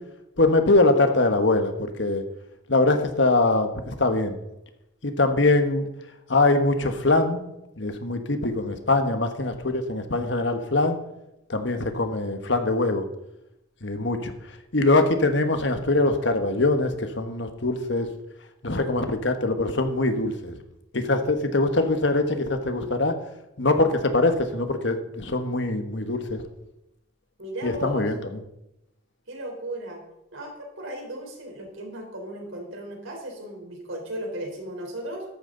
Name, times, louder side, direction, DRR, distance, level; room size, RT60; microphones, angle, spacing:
voice 1, 0.4-2.2 2.7-4.3 5.0-5.9 6.3-7.4 7.8-11.0 11.5-13.1 13.8-14.3 14.7-18.1 18.6-20.5 20.9-23.2 23.6-26.4 27.6-28.2, left 2 dB, 65° left, 7 dB, 1.4 m, -23 dB
voice 2, 27.4-28.1 29.3-30.0 30.3-35.2, right 1 dB, 90° right, 1 dB, 4.1 m, -36 dB
13.5 x 12.0 x 4.0 m, 0.89 s
head